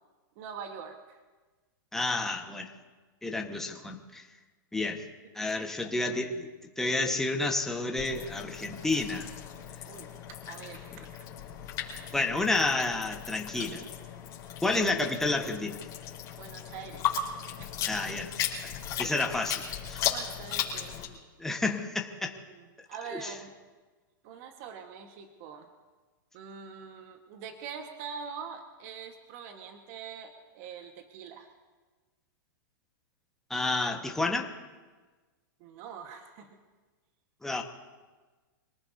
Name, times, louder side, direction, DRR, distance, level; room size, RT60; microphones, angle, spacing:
voice 1, 0.3-1.2 5.5-5.6 9.9-11.1 16.4-17.1 17.6-17.8 19.0-19.1 20.0-21.0 22.3-23.5 24.2-25.7 26.3-31.5 35.6-36.6, right 6 dB, 45° right, 5 dB, 1.5 m, -44 dB
voice 2, 1.9-2.7 3.2-4.2 4.7-5.0 5.3-6.5 6.8-9.3 12.1-13.8 14.6-15.8 17.9-18.3 19.0-19.6 19.9-20.1 21.4-22.3 23.1-23.3 33.5-34.5 37.4-37.6, left 2 dB, 5° left, 2 dB, 1.3 m, -30 dB
sound 1, 8.0-21.1, left 9 dB, 30° left, 4.2 m, -36 dB
26.0 x 19.0 x 2.8 m, 1.3 s
hypercardioid pair, 145°, 11 cm